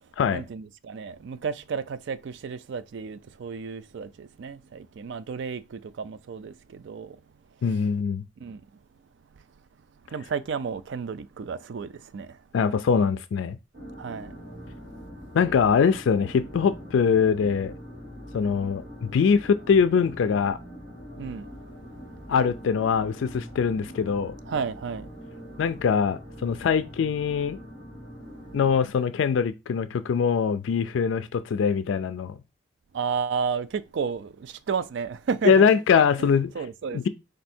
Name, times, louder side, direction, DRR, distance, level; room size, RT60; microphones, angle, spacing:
voice 1, 0.3-7.2 8.4-8.6 10.1-12.3 14.0-14.3 21.2-21.4 24.5-25.1 32.9-35.7 36.0-37.0, right 6 dB, 65° right, 0.3 m, -32 dB
voice 2, 7.6-8.2 12.5-13.6 15.3-17.7 18.3-18.8 19.1-20.6 22.3-24.3 25.6-27.6 28.5-32.4 35.5-36.5 36.9-37.1, left 6 dB, 70° left, 0.3 m, -22 dB
sound 1, 13.7-28.7, equal, 45° right, 2.0 m, -43 dB
4.4 x 2.6 x 4.2 m
head